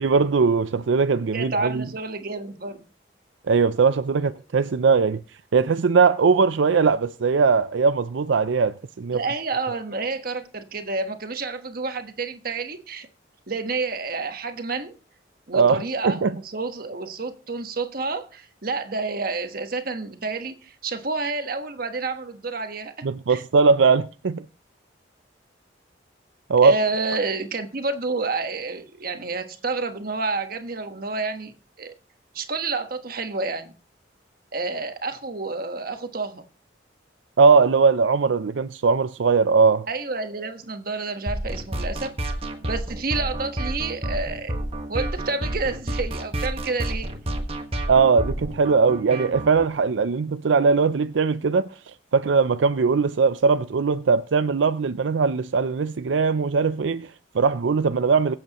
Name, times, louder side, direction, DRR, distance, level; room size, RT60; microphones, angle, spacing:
voice 1, 0.0-1.8 3.5-5.2 5.5-9.2 15.5-16.3 23.0-24.4 26.5-26.7 37.4-39.9 47.9-58.4, right 5 dB, 80° right, 0.5 m, -20 dB
voice 2, 1.3-2.8 9.1-13.1 13.5-14.9 15.5-23.4 26.6-31.5 31.8-31.9 32.3-33.7 34.5-36.4 39.9-42.1 42.6-44.6 44.9-47.1, right 3 dB, 50° right, 1.3 m, -29 dB
sound 1, 41.3-49.7, right 1 dB, 30° right, 1.5 m, -29 dB
23.0 x 7.9 x 3.0 m
head